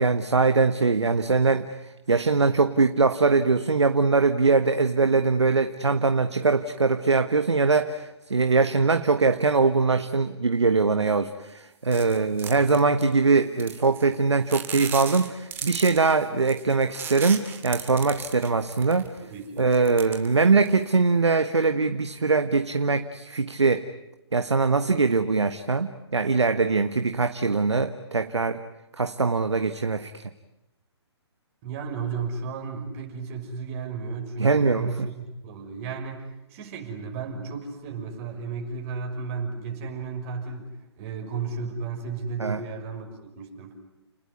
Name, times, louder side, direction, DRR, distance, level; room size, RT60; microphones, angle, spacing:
voice 1, 0.0-19.1 19.6-23.8 24.3-28.6 29.0-30.2 34.4-35.1 42.4-42.6, right 4 dB, 80° right, 9 dB, 1.4 m, -22 dB
sound 1, 11.9-13.1 13.6-14.1 14.5-19.2 19.6-20.8, right 7 dB, 15° right, 2.6 m, -36 dB
voice 2, 19.2-19.7 31.6-36.2 36.5-40.7 41.0-43.7, right 5 dB, 30° right, 2 dB, 6.0 m, -34 dB
30.0 x 20.0 x 9.6 m, 0.94 s
figure-of-eight pair, 130°, 14 cm